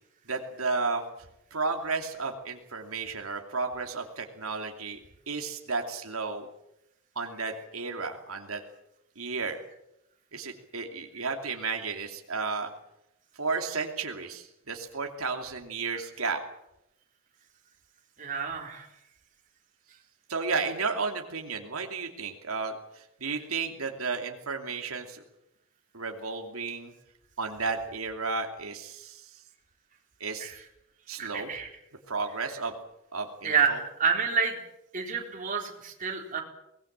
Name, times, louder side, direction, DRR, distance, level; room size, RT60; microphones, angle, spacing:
voice 1, 0.3-1.0 1.5-5.0 5.3-6.5 7.2-8.6 9.2-9.6 10.3-12.7 13.4-16.4 20.3-25.2 25.9-26.9 27.4-29.3 30.2-30.5 31.1-31.5 32.1-32.7 33.1-33.8, right 4 dB, 90° right, 3 dB, 2.8 m, -33 dB
voice 2, 18.2-18.9 30.4-30.5 31.2-31.7 33.4-34.6 34.9-36.4, right 6 dB, 40° right, 1 dB, 4.2 m, -28 dB
24.0 x 20.0 x 7.5 m, 0.85 s
head